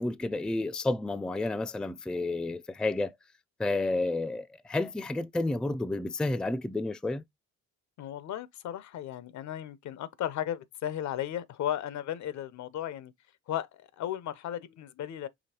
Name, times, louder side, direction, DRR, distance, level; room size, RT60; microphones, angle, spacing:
voice 1, 0.0-3.1 3.6-7.2, left 2 dB, 5° left, 0.3 m, -31 dB
voice 2, 8.0-13.1 13.5-15.3, left 11 dB, 70° left, 0.7 m, -35 dB
5.0 x 3.1 x 2.8 m
cardioid pair, 90°, 30 cm